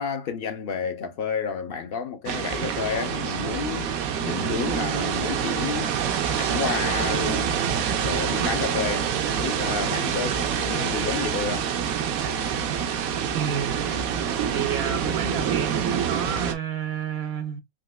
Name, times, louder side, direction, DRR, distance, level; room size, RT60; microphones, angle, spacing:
voice 1, 0.0-3.9 4.2-5.9 6.3-7.5 8.0-11.7, left 6 dB, 65° left, 0.5 m, -30 dB
sound 1, 2.3-16.5, right 8 dB, 85° right, 1.1 m, -26 dB
voice 2, 13.3-13.8 14.5-17.6, right 8 dB, 65° right, 0.6 m, -30 dB
4.0 x 2.8 x 2.2 m
omnidirectional pair, 1.4 m